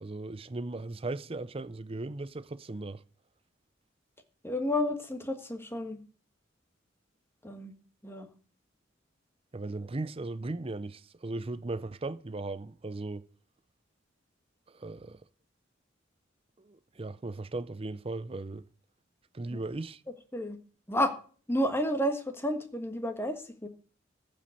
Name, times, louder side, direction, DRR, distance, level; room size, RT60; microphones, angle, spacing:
voice 1, 0.0-3.0 9.5-13.3 14.7-15.2 16.6-18.6 19.3-20.0, right 2 dB, 30° right, 0.6 m, -37 dB
voice 2, 4.4-6.0 7.4-7.7 8.0-8.3 19.5-19.6 20.3-20.6 20.9-21.1 21.5-23.7, left 1 dB, 15° left, 1.5 m, -31 dB
14.5 x 5.3 x 8.4 m
head